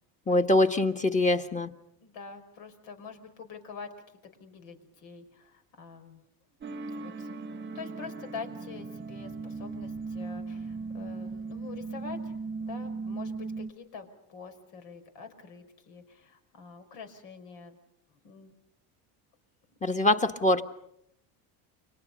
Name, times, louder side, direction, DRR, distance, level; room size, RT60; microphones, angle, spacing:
voice 1, 0.3-1.7 19.8-20.6, left 2 dB, 15° left, 6 dB, 1.6 m, -24 dB
voice 2, 2.0-3.9 4.4-6.2 6.9-7.3 7.7-12.3 12.6-17.8 18.2-18.5, left 5 dB, 75° left, 7 dB, 5.3 m, -45 dB
sound 1, 6.6-13.7, right 4 dB, 25° right, 1.0 m, -38 dB
30.0 x 25.0 x 5.4 m, 0.74 s
supercardioid pair, 110°, 45 cm